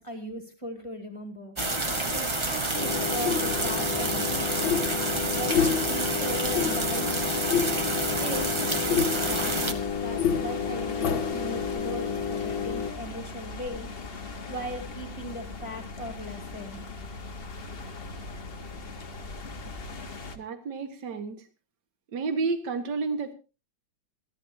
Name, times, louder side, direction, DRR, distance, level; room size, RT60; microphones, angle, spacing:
voice 1, 0.0-1.6 2.1-4.8 5.3-7.1 8.2-13.9 14.5-17.1, right 1 dB, 15° left, 4 dB, 2.3 m, -38 dB
sound 1, 1.6-9.7, right 2 dB, 20° right, 0.7 m, -29 dB
sound 2, 2.7-12.9, left 7 dB, 65° left, 1.9 m, -29 dB
sound 3, 9.1-20.4, left 3 dB, 35° left, 1.2 m, -39 dB
voice 2, 20.4-21.4 22.1-23.3, right 4 dB, 55° right, 8 dB, 2.2 m, -30 dB
27.5 x 11.5 x 2.8 m, 0.30 s
omnidirectional pair, 2.3 m